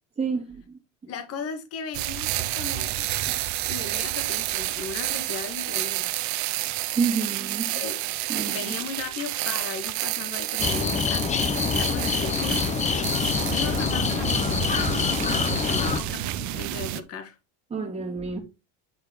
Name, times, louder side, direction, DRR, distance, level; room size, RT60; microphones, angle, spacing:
voice 1, 0.2-0.8 6.9-7.8 8.3-8.8 17.7-18.4, right 5 dB, 15° right, 2.7 m, -29 dB
voice 2, 1.1-3.1 3.7-6.1 7.7-8.0 8.4-13.2 13.5-17.4, left 5 dB, 40° left, 1.7 m, -37 dB
sound 1, 1.9-17.0, right 16 dB, 55° right, 0.8 m, -30 dB
sound 2, 10.6-16.0, left 5 dB, 20° left, 0.8 m, -25 dB
sound 3, 11.8-16.9, left 3 dB, 85° left, 2.1 m, -43 dB
9.2 x 4.3 x 3.9 m
cardioid pair, 135°, 35 cm